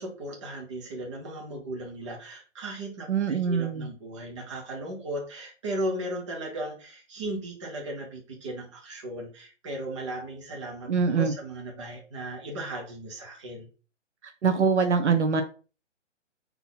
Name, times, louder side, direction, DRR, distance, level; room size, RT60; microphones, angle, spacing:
voice 1, 0.0-13.7, right 1 dB, 25° right, -1 dB, 1.0 m, -36 dB
voice 2, 3.1-3.9 10.9-11.3 14.2-15.4, right 5 dB, 65° right, 6 dB, 0.7 m, -24 dB
4.1 x 2.8 x 3.9 m, 0.36 s
hypercardioid pair, 165°, 38 cm